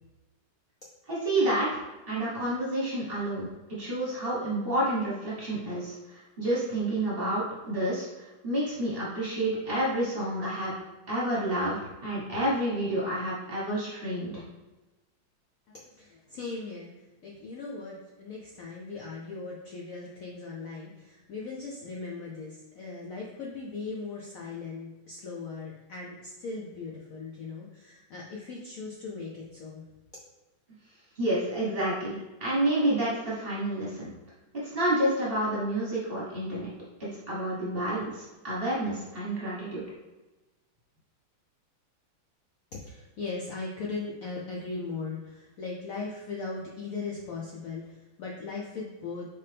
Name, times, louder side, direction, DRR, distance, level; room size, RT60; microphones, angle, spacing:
voice 1, 1.1-1.8 2.1-10.7 11.1-14.4 31.2-34.1 34.6-36.7 37.0-39.8, right 1 dB, 35° right, -7 dB, 1.1 m, -29 dB
voice 2, 15.7-16.9 17.2-29.8 42.7-49.3, left 4 dB, 85° left, -3 dB, 0.7 m, -38 dB
4.4 x 3.5 x 3.3 m, 1.1 s
omnidirectional pair, 2.3 m